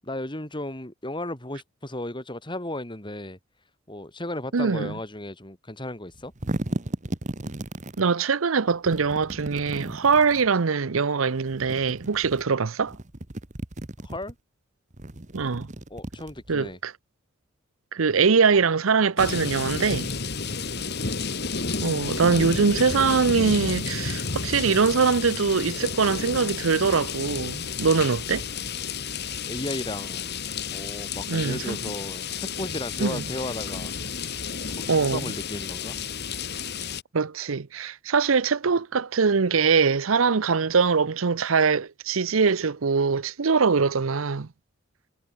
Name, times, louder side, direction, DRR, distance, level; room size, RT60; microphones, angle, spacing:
voice 1, 0.0-3.4 3.9-6.3 14.0-14.4 15.9-16.8 20.4-21.0 29.5-33.9 34.8-36.0, left 1 dB, 25° left, 3.6 m, -35 dB
voice 2, 4.5-4.9 8.0-12.9 15.3-15.7 16.5-16.9 17.9-20.1 21.8-28.5 31.3-31.8 33.0-33.2 34.9-35.3 37.1-44.5, right 5 dB, 90° right, 0.7 m, -22 dB
sound 1, 6.1-8.1 8.9-10.5 11.4-12.4 12.8-14.3 14.9-16.7, right 1 dB, 35° right, 1.6 m, -35 dB
sound 2, 19.2-37.0, left 5 dB, 55° left, 2.7 m, -31 dB
head